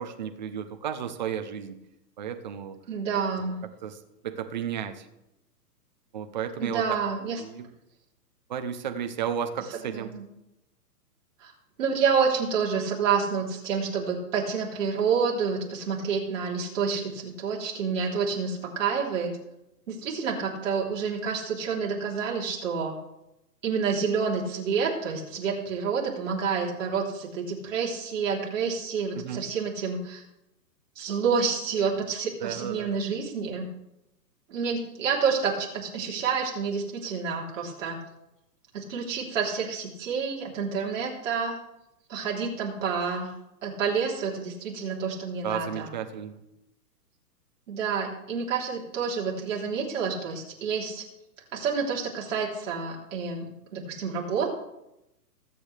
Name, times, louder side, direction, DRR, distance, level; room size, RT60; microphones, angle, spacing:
voice 1, 0.0-1.8 2.2-2.8 3.8-4.0 4.2-5.1 6.1-7.0 7.4-7.7 8.5-10.1 29.1-29.4 32.4-32.9 45.4-46.4, right 8 dB, 30° right, 7 dB, 0.6 m, -33 dB
voice 2, 2.9-3.5 6.6-7.4 9.9-10.2 11.4-11.5 11.8-19.3 19.9-23.0 23.6-30.2 30.9-33.7 34.5-38.0 38.7-41.6 42.1-43.3 43.6-45.9 47.7-51.0 51.5-53.4 53.7-54.5, right 5 dB, 50° right, -2 dB, 3.4 m, -28 dB
20.5 x 8.3 x 3.4 m, 0.88 s
hypercardioid pair, 165°, 48 cm